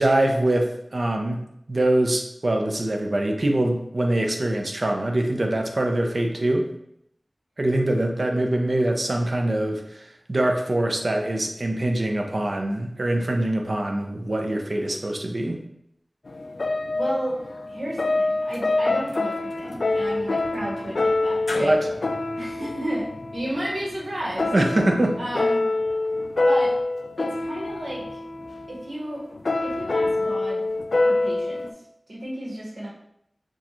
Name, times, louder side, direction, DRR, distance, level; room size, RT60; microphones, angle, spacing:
voice 1, 0.0-1.4 1.7-6.7 7.6-15.6 21.6-21.9 24.5-25.2, right 1 dB, 65° right, 2 dB, 0.7 m, -23 dB
sound 1, 16.3-31.7, left 2 dB, 85° left, 0.3 m, -26 dB
voice 2, 16.9-17.4 17.7-21.7 22.4-24.5 25.2-25.6 26.4-26.8 27.2-28.2 28.7-29.2 29.6-30.7 31.0-31.7 32.1-32.9, right 1 dB, 90° right, -5 dB, 1.3 m, -32 dB
6.2 x 2.4 x 3.0 m, 0.75 s
wide cardioid pair, 40°, 0 cm